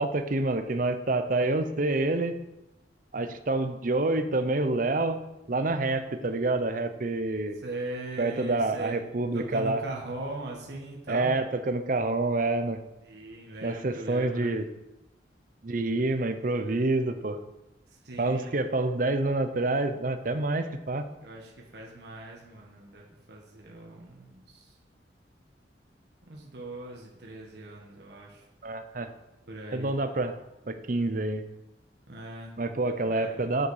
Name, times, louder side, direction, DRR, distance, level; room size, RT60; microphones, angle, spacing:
voice 1, 0.0-2.4 3.1-5.2 5.5-7.6 8.2-9.8 11.1-12.8 13.6-14.7 15.6-17.4 18.2-21.1 28.6-29.1 29.7-30.4 30.7-31.4 32.6-33.7, right 2 dB, 45° right, 9 dB, 0.7 m, -27 dB
voice 2, 7.6-9.0 9.3-11.3 13.1-14.6 16.6-16.8 18.0-18.6 21.2-24.7 26.2-28.4 29.4-29.9 32.1-32.6 33.0-33.5, right 2 dB, 65° right, -1 dB, 1.5 m, -40 dB
7.7 x 6.9 x 4.8 m, 0.95 s
head